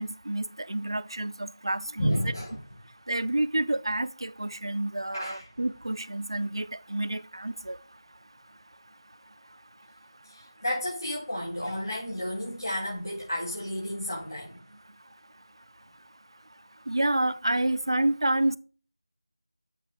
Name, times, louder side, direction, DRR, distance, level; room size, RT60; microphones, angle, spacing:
voice 1, 0.0-2.2 3.1-7.8 16.9-18.6, right 1 dB, 75° right, 0.4 m, -29 dB
voice 2, 2.0-2.6 5.1-5.4 10.3-14.6, equal, 65° left, 3.7 m, -31 dB
8.1 x 3.0 x 5.9 m
figure-of-eight pair, 170°, 3 cm